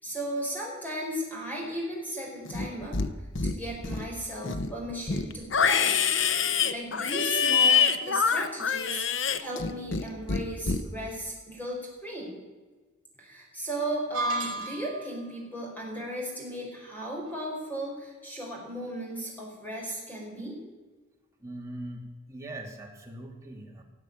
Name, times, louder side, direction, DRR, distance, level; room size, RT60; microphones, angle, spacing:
voice 1, 0.0-3.1 3.4-6.1 6.7-9.0 9.4-12.4 13.2-20.6, right 1 dB, 10° left, -2 dB, 4.7 m, -36 dB
Livestock farm animals working animals, 2.5-3.1 3.4-4.1 4.4-10.0 10.3-10.8, left 6 dB, 60° left, 0.8 m, -25 dB
sound 1, 14.1-15.1, right 2 dB, 60° right, 4.2 m, -31 dB
voice 2, 21.4-23.8, right 1 dB, 15° right, 0 dB, 2.4 m, -41 dB
17.5 x 7.9 x 8.8 m, 1.3 s
head